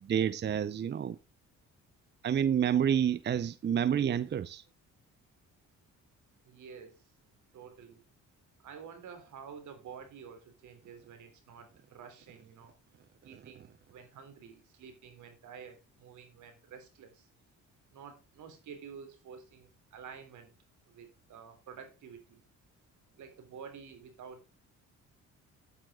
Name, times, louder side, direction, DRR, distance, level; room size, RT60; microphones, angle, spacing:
voice 1, 0.0-1.2 2.2-4.6, right 9 dB, 35° right, 0.6 m, -29 dB
voice 2, 6.4-7.1 7.5-8.0 8.6-12.7 13.2-17.3 17.9-20.5 20.9-22.4 23.2-24.5, right 6 dB, 75° right, 3.4 m, -50 dB
10.0 x 9.1 x 3.7 m
cardioid pair, 90°, 30 cm